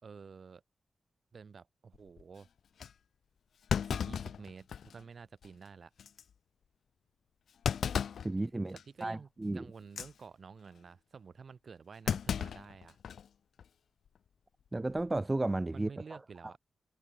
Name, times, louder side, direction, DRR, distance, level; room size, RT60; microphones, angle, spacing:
voice 1, 0.0-0.6 1.3-2.5 3.9-5.9 8.7-13.0 15.7-16.6, right 5 dB, 55° right, 4.7 m, -51 dB
Thump thud, 1.9-2.2 2.8-2.9 3.7-5.0 5.4-5.5 6.0-6.2 7.6-8.3 8.8-9.0 9.8-10.1 12.1-13.3 13.6-13.7 14.8-15.2, left 7 dB, 85° left, 0.9 m, -35 dB
voice 2, 8.2-8.7 9.0-9.7 14.7-15.9, right 2 dB, 20° right, 0.5 m, -33 dB
wide cardioid pair, 110°, 0 cm